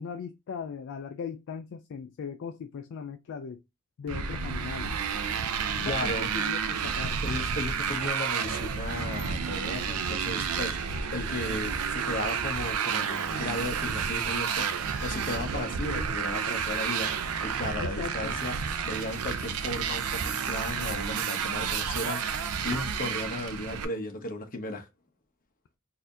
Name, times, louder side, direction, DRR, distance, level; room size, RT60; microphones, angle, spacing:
voice 1, 0.0-3.6 4.0-4.9 5.8-7.2 17.8-18.4, left 6 dB, 60° left, 0.3 m, -38 dB
Motorcycle, 4.1-23.8, right 6 dB, 80° right, 0.5 m, -31 dB
voice 2, 5.9-6.3 7.2-18.5 18.8-24.9, left 2 dB, 40° left, 0.9 m, -35 dB
4.0 x 2.6 x 2.6 m
head